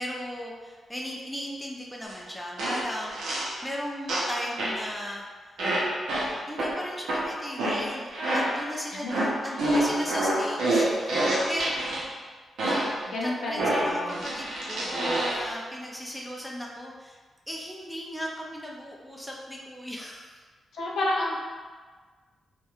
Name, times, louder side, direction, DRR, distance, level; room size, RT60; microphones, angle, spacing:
voice 1, 0.0-5.3 6.5-12.1 12.6-13.0 13.2-17.2 17.5-20.4, equal, 5° left, -2 dB, 0.3 m, -37 dB
sound 1, 2.1-2.2 2.6-3.6 4.1-4.9 5.6-8.7 9.1-12.0 12.6-13.1 13.6-15.5, right 1 dB, 90° right, 0.5 m, -27 dB
voice 2, 9.0-10.0 13.1-14.2 20.7-21.4, left 1 dB, 70° left, -3 dB, 0.5 m, -31 dB
2.8 x 2.1 x 2.3 m, 1.5 s
wide cardioid pair, 125°, 0 cm